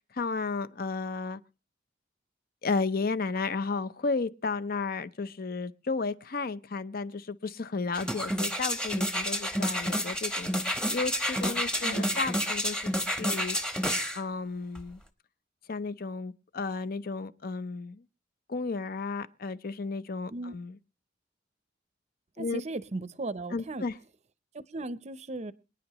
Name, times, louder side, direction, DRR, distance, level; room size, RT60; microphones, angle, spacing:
voice 1, 0.1-1.4 2.6-10.6 10.9-12.9 13.2-13.6 14.1-15.0 15.7-18.0 18.5-20.8 22.4-22.6 23.5-23.9, left 4 dB, 50° left, 0.6 m, -33 dB
sound 1, 7.9-14.2 14.7-14.8, equal, 5° left, 0.9 m, -30 dB
voice 2, 22.4-23.8 24.5-25.5, right 2 dB, 35° right, 0.6 m, -37 dB
27.0 x 9.7 x 3.0 m
head